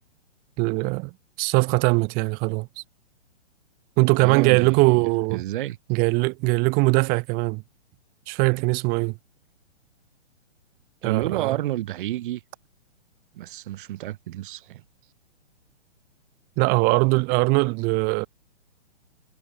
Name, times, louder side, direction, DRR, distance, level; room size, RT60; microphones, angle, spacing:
voice 1, 0.6-1.1 1.4-2.8 4.0-5.4 5.9-7.6 8.3-9.1 11.0-11.6 16.6-18.3, right 30 dB, 25° right, 1.6 m, -21 dB
voice 2, 4.2-4.9 5.3-5.8 11.0-12.4 13.3-14.8, right 14 dB, 45° right, 6.8 m, -30 dB
hypercardioid pair, 145°, 36 cm